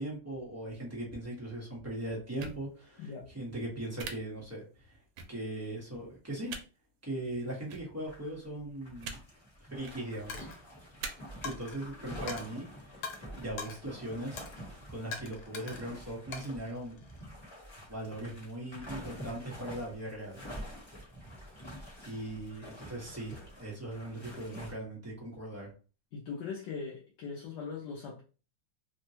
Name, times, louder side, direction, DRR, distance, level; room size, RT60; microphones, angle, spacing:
voice 1, 0.0-5.0 5.3-6.5 7.0-9.2 9.7-10.5 11.4-13.0 13.4-14.4 14.9-17.0 17.9-20.4 22.0-25.7, right 1 dB, 10° right, 0.8 m, -39 dB
sound 1, 2.4-2.6 4.0-4.1 5.2-5.3 6.5-6.6 7.7-7.8 9.0-9.2 9.7-10.0 11.0-11.1, right 5 dB, 80° right, 1.3 m, -40 dB
sound 2, 8.1-8.5 8.7-24.7, equal, 15° left, 1.1 m, -47 dB
Coin (dropping), 10.3-10.6 11.4-11.8 12.3-12.5 13.0-13.2 13.6-13.8 14.4-14.6 15.1-15.9 16.3-17.2, left 5 dB, 90° left, 1.5 m, -42 dB
voice 2, 26.1-28.2, left 5 dB, 70° left, 1.2 m, -40 dB
3.4 x 2.2 x 2.7 m
omnidirectional pair, 2.1 m